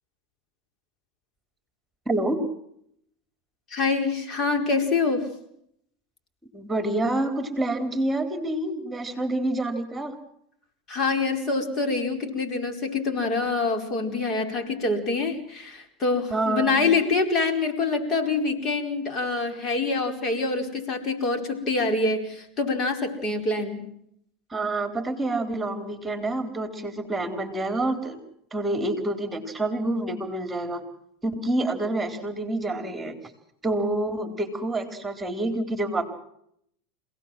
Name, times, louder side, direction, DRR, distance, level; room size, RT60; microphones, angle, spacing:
voice 1, 2.1-2.4 6.5-10.2 16.3-16.8 24.5-28.2 28.5-30.8 31.2-33.1 33.6-36.1, right 2 dB, 10° right, 6 dB, 4.1 m, -27 dB
voice 2, 3.7-5.3 10.9-23.9, left 3 dB, 35° left, 5 dB, 4.9 m, -25 dB
26.5 x 18.5 x 7.7 m, 0.72 s
hypercardioid pair, 90°, 0 cm